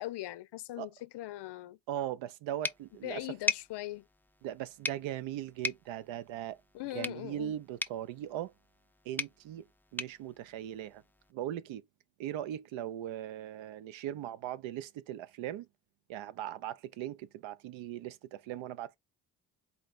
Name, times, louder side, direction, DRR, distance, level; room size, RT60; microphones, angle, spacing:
voice 1, 0.0-1.8 3.0-4.0 6.7-7.5, left 16 dB, 55° left, 0.6 m, -40 dB
voice 2, 1.9-3.4 4.4-6.6 6.9-8.5 9.1-9.6 9.9-11.0 11.3-11.8 12.2-15.7 16.1-19.0, right 12 dB, 65° right, 0.7 m, -39 dB
sound 1, 2.6-11.3, left 3 dB, 5° left, 0.3 m, -41 dB
4.0 x 3.0 x 4.1 m
hypercardioid pair, 45°, 50 cm